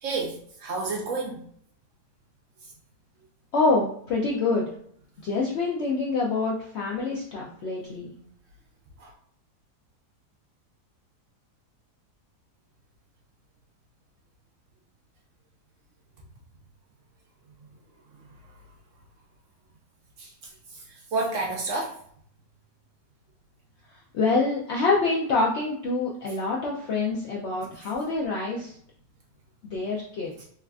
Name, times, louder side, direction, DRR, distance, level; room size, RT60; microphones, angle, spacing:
voice 1, 0.0-1.4 9.0-9.1 20.2-20.3 20.7-20.8 21.1-22.0, right 3 dB, 70° right, 0 dB, 0.7 m, -30 dB
voice 2, 3.5-4.7 5.2-8.1 24.1-28.8 29.6-30.4, left 3 dB, 90° left, -3 dB, 0.6 m, -26 dB
3.3 x 2.3 x 2.3 m, 0.63 s
omnidirectional pair, 1.7 m